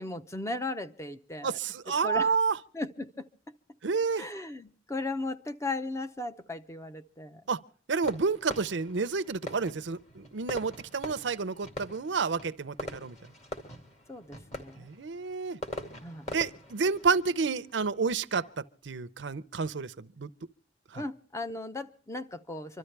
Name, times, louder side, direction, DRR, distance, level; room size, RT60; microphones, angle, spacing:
voice 1, 0.0-1.6 2.0-2.3 2.7-3.5 4.2-7.4 14.1-14.9 16.0-16.3 20.9-22.8, left 2 dB, 15° left, 0.7 m, -37 dB
voice 2, 1.4-2.6 3.8-4.3 7.5-7.6 7.9-13.2 14.8-15.6 16.3-20.3 20.9-21.0, right 5 dB, 75° right, 0.6 m, -30 dB
Fireworks, 8.0-18.6, left 1 dB, 40° left, 2.3 m, -44 dB
26.0 x 13.0 x 3.3 m
head